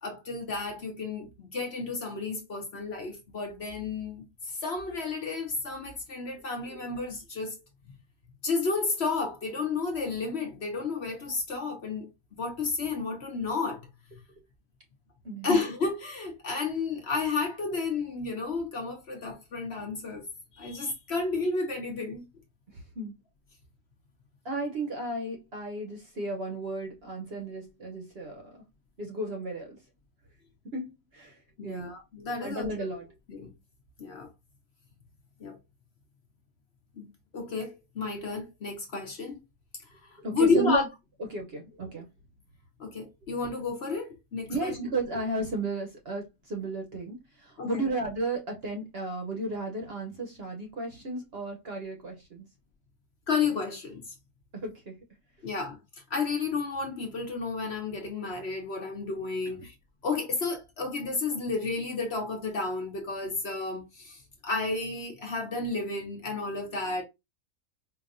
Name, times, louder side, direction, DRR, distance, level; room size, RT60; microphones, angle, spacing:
voice 1, 0.0-7.6 8.4-12.1 12.4-13.8 15.4-20.2 20.5-22.2 31.6-32.7 33.3-33.5 34.0-34.3 35.4-35.6 37.0-39.4 40.3-40.8 42.8-44.7 47.6-47.8 53.3-54.0 55.4-55.8 56.1-59.7 60.0-67.0, left 4 dB, 50° left, 1.0 m, -31 dB
voice 2, 22.7-23.2 24.4-28.6 29.0-29.8 30.6-31.9 32.4-33.1 40.2-40.9 41.3-42.1 44.5-52.4 54.5-55.0 59.5-59.6, right 2 dB, 50° right, 0.9 m, -34 dB
4.9 x 2.5 x 2.5 m
omnidirectional pair, 1.6 m